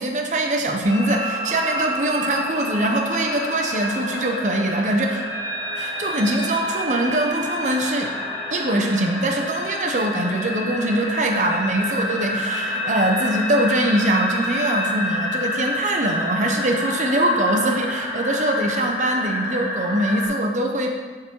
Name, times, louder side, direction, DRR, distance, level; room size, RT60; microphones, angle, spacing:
voice 1, 0.0-5.2 5.8-8.1 8.5-20.9, right 1 dB, 40° right, 2 dB, 0.8 m, -22 dB
sound 1, 0.8-20.3, left 1 dB, 25° left, 2.0 m, -28 dB
8.3 x 4.0 x 4.5 m, 1.5 s
head